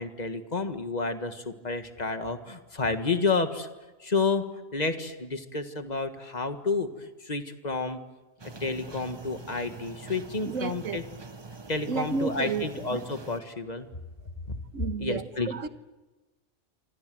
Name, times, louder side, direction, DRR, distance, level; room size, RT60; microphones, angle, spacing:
voice 1, 0.0-3.7 4.0-8.0 8.6-11.0 11.7-13.9 14.5-14.6 15.0-15.5, left 3 dB, 30° left, 1.8 m, -30 dB
sound 1, 8.4-13.4, right 3 dB, 25° right, 0.7 m, -44 dB
voice 2, 10.4-11.0 11.9-13.0 14.7-15.7, right 5 dB, 65° right, 1.5 m, -32 dB
27.5 x 25.5 x 7.9 m
omnidirectional pair, 1.4 m